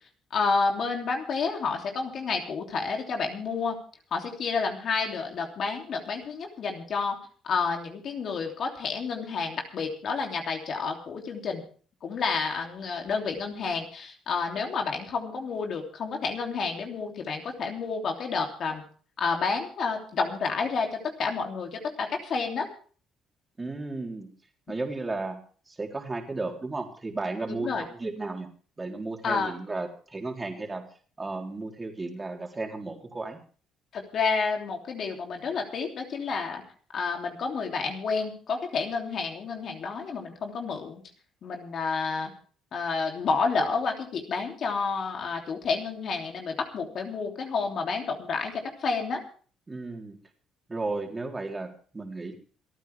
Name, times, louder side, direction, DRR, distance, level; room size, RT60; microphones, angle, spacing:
voice 1, 0.3-3.8 4.1-7.2 7.4-11.6 12.0-18.8 19.2-22.7 27.5-27.8 29.2-29.5 33.9-36.6 36.9-41.0 41.4-42.3 42.7-49.2, left 4 dB, 55° left, 2 dB, 3.1 m, -30 dB
voice 2, 23.6-24.3 24.7-25.4 25.7-28.5 28.8-30.8 31.2-33.4 49.7-50.2 50.7-52.4, right 3 dB, 20° right, 1 dB, 3.9 m, -34 dB
27.5 x 9.2 x 3.5 m, 0.43 s
supercardioid pair, 80°, 0 cm